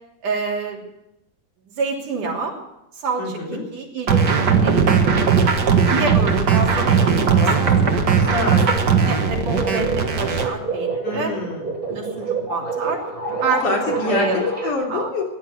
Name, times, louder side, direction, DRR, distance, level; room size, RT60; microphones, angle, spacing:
voice 1, 0.2-0.8 1.8-2.6 2.9-5.1 5.9-7.7 8.5-8.7 9.0-11.3 11.9-13.0 13.4-14.4 14.9-15.1, right 4 dB, 75° right, -1 dB, 4.6 m, -27 dB
voice 2, 3.2-3.6 7.3-7.8 8.2-8.7 11.0-11.7 13.5-15.2, left 3 dB, 70° left, -1 dB, 4.8 m, -26 dB
sound 1, 4.1-10.5, right 6 dB, 45° right, 1.5 m, -18 dB
sound 2, 9.5-14.7, right 4 dB, 15° right, 3.8 m, -28 dB
16.5 x 11.0 x 7.9 m, 0.87 s
omnidirectional pair, 3.6 m